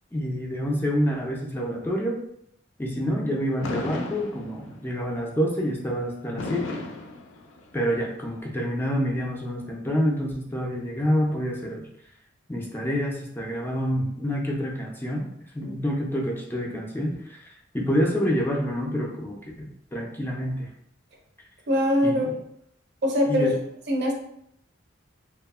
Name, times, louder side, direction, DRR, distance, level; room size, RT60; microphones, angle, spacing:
voice 1, 0.1-2.2 2.8-6.8 7.7-11.9 12.5-15.3 15.5-20.7 22.0-22.4 23.2-23.5, equal, 10° left, -1 dB, 0.3 m, -27 dB
Fireworks, 3.6-4.9 6.4-7.9, left 2 dB, 80° left, 0.4 m, -34 dB
voice 2, 21.7-22.4 23.0-23.5 23.9-24.1, equal, 60° right, 1 dB, 0.5 m, -22 dB
2.7 x 2.3 x 2.3 m, 0.72 s
head